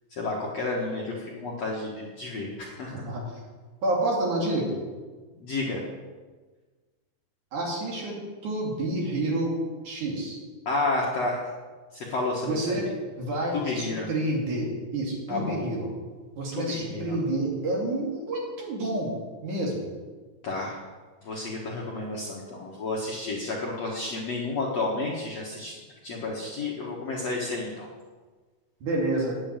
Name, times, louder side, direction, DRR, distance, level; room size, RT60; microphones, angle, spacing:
voice 1, 0.1-3.0 5.4-5.8 10.7-11.5 11.9-12.8 13.6-14.1 15.3-15.6 16.5-17.2 20.4-20.8 21.2-25.7 26.0-27.9, left 2 dB, 55° left, -3 dB, 2.0 m, -31 dB
voice 2, 3.8-4.7 7.5-9.5 9.8-10.4 12.4-12.9 13.2-15.9 16.4-19.1 19.4-19.9 28.8-29.4, right 2 dB, 50° right, -2 dB, 3.9 m, -29 dB
9.8 x 8.6 x 8.9 m, 1.4 s
omnidirectional pair, 4.8 m